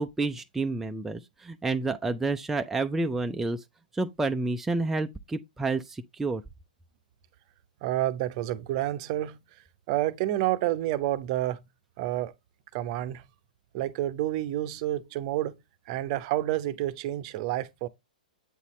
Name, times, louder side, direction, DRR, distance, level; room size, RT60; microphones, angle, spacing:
voice 1, 0.0-3.6 3.9-6.4, right 3 dB, 5° right, 0.4 m, -29 dB
voice 2, 7.8-9.4 9.9-11.6 12.0-12.3 12.7-13.2 13.7-15.6 15.9-17.9, right 14 dB, 45° right, 0.6 m, -29 dB
8.2 x 4.1 x 3.1 m
hypercardioid pair, 120°, 5 cm